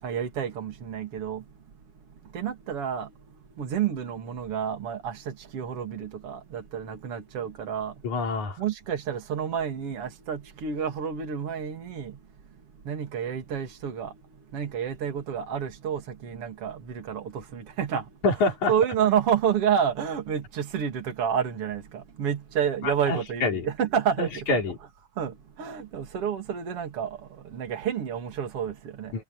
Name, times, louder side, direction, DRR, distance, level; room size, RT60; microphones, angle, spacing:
voice 1, 0.0-1.4 2.2-8.0 8.6-12.2 12.8-18.1 18.7-24.6 25.2-29.1, right 8 dB, 50° right, 3.4 m, -30 dB
voice 2, 8.0-8.6 18.2-18.7 22.8-23.7 24.2-24.8 29.1-29.2, left 3 dB, 75° left, 5.4 m, -26 dB
omnidirectional pair, 3.4 m